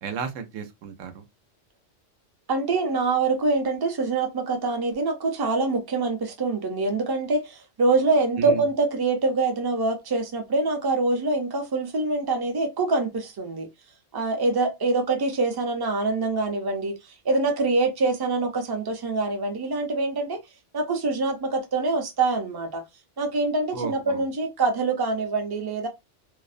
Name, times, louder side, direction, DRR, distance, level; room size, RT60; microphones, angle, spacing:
voice 1, 0.0-1.2 8.4-8.6 23.7-24.2, right 5 dB, 85° right, 1.0 m, -33 dB
voice 2, 2.5-13.7 14.1-16.9 17.2-20.4 20.7-22.8 23.2-25.9, right 3 dB, 40° right, 0.3 m, -25 dB
2.5 x 2.0 x 2.4 m
omnidirectional pair, 1.3 m